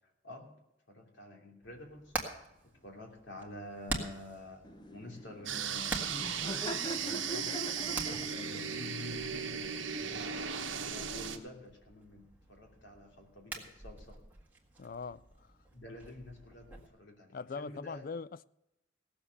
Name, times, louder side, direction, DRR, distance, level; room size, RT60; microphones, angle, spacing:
voice 1, 0.9-2.1 2.8-6.3 7.0-7.7 8.3-10.2 10.9-14.2 15.7-18.0, left 1 dB, 65° left, 2.9 m, -49 dB
Hammer, 1.6-16.9, right 2 dB, 10° right, 1.7 m, -46 dB
Laughter, 4.6-10.9, equal, 25° left, 0.8 m, -44 dB
Sound Design Glitch Abstract Reaktor, 5.5-11.4, right 7 dB, 70° right, 1.2 m, -37 dB
voice 2, 14.8-15.5 17.3-18.4, left 4 dB, 45° left, 0.4 m, -41 dB
17.0 x 7.2 x 6.6 m
head